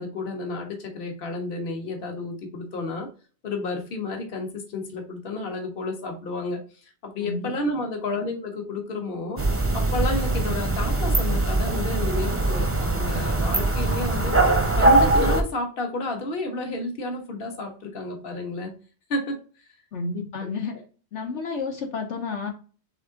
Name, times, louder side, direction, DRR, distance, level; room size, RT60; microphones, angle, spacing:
voice 1, 0.0-3.1 3.4-14.3 14.8-18.7 19.1-19.4 20.4-20.5, left 2 dB, 55° left, 2 dB, 1.3 m, -31 dB
sound 1, 9.4-15.4, right 2 dB, 15° right, 0.6 m, -22 dB
voice 2, 19.9-20.7 21.1-22.5, left 4 dB, 80° left, 1 dB, 1.3 m, -30 dB
3.6 x 3.6 x 3.7 m, 0.37 s
omnidirectional pair, 1.2 m